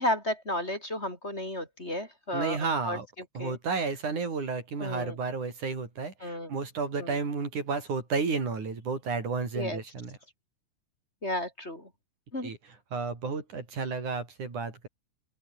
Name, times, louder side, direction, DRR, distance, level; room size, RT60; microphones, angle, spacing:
voice 1, 0.0-2.6 2.8-3.0 3.4-3.6 4.8-5.2 6.2-6.5 7.0-7.1 9.5-9.8 11.2-11.8 12.3-12.5, left 1 dB, 20° left, 4.7 m, -32 dB
voice 2, 2.3-3.1 3.3-10.2 12.4-14.9, right 4 dB, 90° right, 6.7 m, -32 dB
open air
omnidirectional pair, 3.4 m